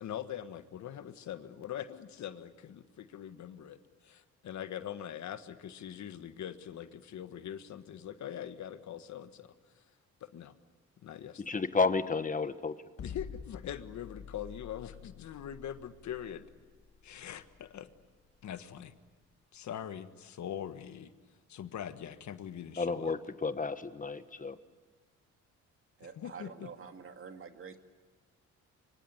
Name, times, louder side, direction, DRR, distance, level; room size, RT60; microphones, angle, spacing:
voice 1, 0.0-9.8 10.2-10.5 11.0-11.4 13.0-16.4 17.0-17.9 18.4-18.9 19.5-21.1 21.5-23.1 26.1-26.7, left 10 dB, 65° left, 10 dB, 1.5 m, -42 dB
voice 2, 11.5-12.7 22.8-24.6, left 4 dB, 25° left, 11 dB, 1.3 m, -31 dB
sound 1, 13.0-19.2, left 7 dB, 50° left, 1.8 m, -48 dB
voice 3, 26.0-27.8, right 6 dB, 45° right, 6 dB, 2.2 m, -47 dB
25.0 x 23.5 x 9.6 m, 1.4 s
cardioid pair, 90°, 30 cm